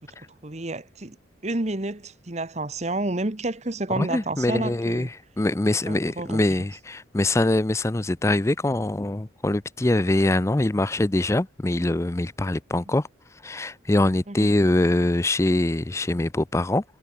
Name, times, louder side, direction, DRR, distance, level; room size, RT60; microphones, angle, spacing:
voice 1, 0.4-1.2 1.4-5.1 5.8-6.4 12.9-13.0 14.3-14.5, right 2 dB, 35° right, 1.2 m, -30 dB
voice 2, 4.0-5.1 5.4-13.1 13.4-16.8, left 1 dB, 15° left, 0.4 m, -23 dB
head